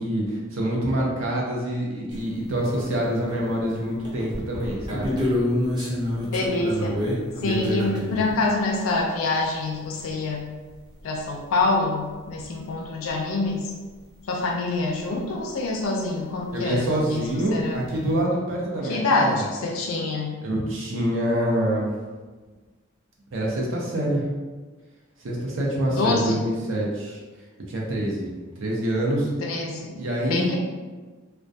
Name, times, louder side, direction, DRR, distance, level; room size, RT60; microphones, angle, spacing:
voice 1, 0.0-5.1 16.5-19.4 20.4-21.9 23.3-24.2 25.2-27.2 27.7-28.3 28.6-29.3 30.0-30.5, right 1 dB, 70° right, -3 dB, 0.6 m, -26 dB
sound 1, 2.1-2.2 2.6-3.7 4.0-8.4 11.0-11.1 11.3-11.4 12.4-12.5 13.1-13.2 16.8-16.9 17.0-17.5, left 1 dB, 20° right, 0.6 m, -27 dB
voice 2, 6.3-7.0 7.4-10.5 11.0-13.7 14.3-17.3 17.5-17.8 18.8-20.4 25.9-26.4 29.4-30.0 30.3-30.6, left 3 dB, 80° left, 0 dB, 0.4 m, -26 dB
2.2 x 2.2 x 2.5 m, 1.3 s
head